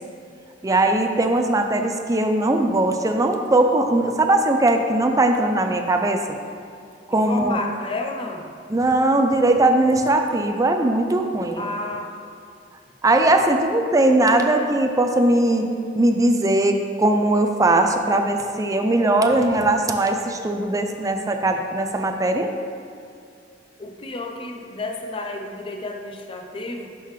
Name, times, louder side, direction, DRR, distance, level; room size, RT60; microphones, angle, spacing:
voice 1, 0.6-6.2 7.1-7.6 8.7-11.6 13.0-15.7 16.0-22.5, right 2 dB, 20° right, 4 dB, 0.4 m, -19 dB
voice 2, 7.1-8.5 11.6-12.1 23.8-26.9, left 2 dB, 30° left, 1 dB, 0.6 m, -31 dB
11.0 x 3.8 x 3.1 m, 2.5 s
head